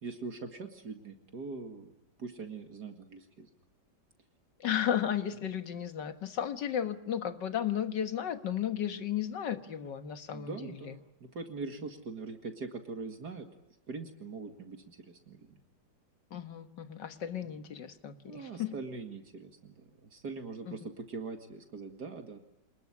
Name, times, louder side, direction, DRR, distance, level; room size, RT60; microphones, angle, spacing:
voice 1, 0.0-1.9 2.2-3.5 10.3-13.5 13.9-15.6 18.3-22.4, right 4 dB, 70° right, 5 dB, 2.6 m, -42 dB
voice 2, 4.6-10.9 16.3-18.8 20.7-20.8, left 9 dB, 85° left, 9 dB, 2.1 m, -34 dB
27.0 x 20.5 x 9.8 m, 0.88 s
omnidirectional pair, 1.8 m